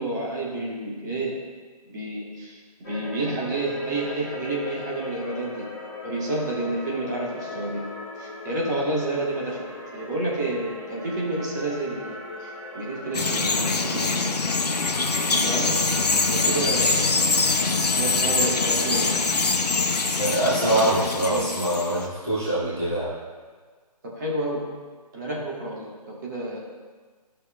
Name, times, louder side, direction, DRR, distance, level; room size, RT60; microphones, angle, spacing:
voice 1, 0.0-1.3 1.9-2.6 2.9-5.7 6.0-7.8 8.2-14.2 15.3-15.8 16.3-17.1 18.0-19.2 20.6-21.4 24.0-24.6 25.1-26.6, right 2 dB, 30° right, -4 dB, 1.3 m, -30 dB
sound 1, 2.8-19.3, left 2 dB, 25° left, 1.2 m, -39 dB
Bird vocalization bird call bird song, 13.1-22.0, left 3 dB, 80° left, 0.9 m, -24 dB
voice 2, 20.0-23.1, right 1 dB, 5° right, -13 dB, 0.3 m, -24 dB
14.5 x 5.5 x 2.3 m, 1.5 s
figure-of-eight pair, 160°, 20 cm